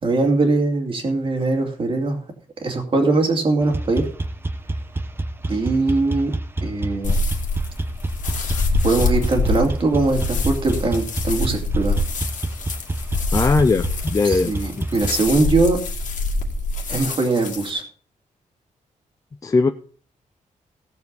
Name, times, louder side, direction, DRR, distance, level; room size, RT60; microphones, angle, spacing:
voice 1, 0.0-2.2 2.6-4.1 5.5-6.3 6.6-7.2 8.8-12.0 14.2-15.8 16.9-17.8, right 3 dB, 40° right, 3 dB, 2.4 m, -21 dB
sound 1, 3.6-15.3, right 2 dB, 15° right, 0.8 m, -28 dB
sound 2, 7.0-17.7, left 2 dB, 65° left, 2.1 m, -25 dB
voice 2, 13.3-14.9 19.4-19.7, left 3 dB, 25° left, 7 dB, 0.5 m, -19 dB
17.0 x 7.2 x 4.0 m, 0.42 s
wide cardioid pair, 150°, 14 cm